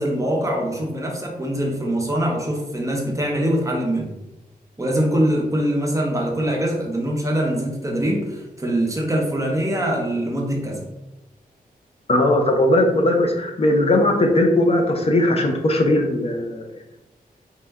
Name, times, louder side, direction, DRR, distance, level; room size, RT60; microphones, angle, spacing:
voice 1, 0.0-4.1 4.8-10.8, right 1 dB, 20° right, 0 dB, 0.6 m, -23 dB
voice 2, 12.1-16.6, left 1 dB, 40° left, 2 dB, 0.5 m, -18 dB
4.3 x 2.1 x 3.4 m, 0.96 s
wide cardioid pair, 150°, 16 cm